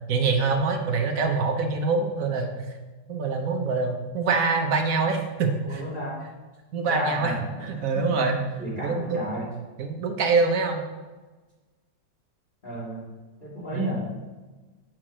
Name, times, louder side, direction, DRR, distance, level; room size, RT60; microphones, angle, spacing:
voice 1, 0.1-2.5 3.1-5.8 6.7-7.3 7.8-8.4 8.8-9.2 9.8-10.8 13.7-13.9, right 4 dB, 55° right, 4 dB, 1.1 m, -24 dB
voice 2, 5.6-6.2 6.9-7.4 7.8-8.0 8.6-9.5 12.6-13.0 13.4-14.0, right 1 dB, 30° left, -8 dB, 2.5 m, -31 dB
7.6 x 4.6 x 6.1 m, 1.3 s
omnidirectional pair, 1.9 m